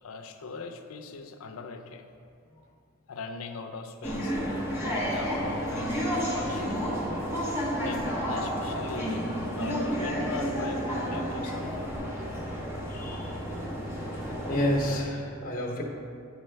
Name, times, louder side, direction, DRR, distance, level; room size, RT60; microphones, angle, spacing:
voice 1, 0.0-2.0 3.1-4.4 4.8-6.7 7.8-9.3 9.6-11.9, left 4 dB, 70° left, 6 dB, 0.5 m, -39 dB
sound 1, 4.0-15.0, equal, 10° right, 0.9 m, -31 dB
voice 2, 12.7-13.5 14.0-15.8, equal, 40° left, -1 dB, 0.9 m, -31 dB
8.9 x 4.6 x 3.3 m, 2.4 s
head